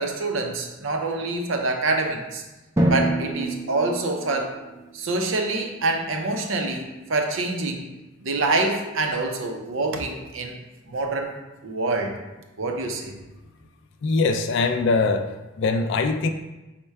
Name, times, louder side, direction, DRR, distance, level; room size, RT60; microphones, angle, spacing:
voice 1, 0.0-2.4 2.9-4.6 4.9-7.8 8.2-10.6 10.9-12.2 12.6-13.2, right 2 dB, 75° right, 3 dB, 0.6 m, -26 dB
Drum, 2.8-5.3, right 1 dB, 15° right, 0.4 m, -26 dB
voice 2, 14.0-16.3, left 3 dB, 60° left, 7 dB, 0.3 m, -22 dB
4.3 x 2.1 x 4.6 m, 1.1 s
head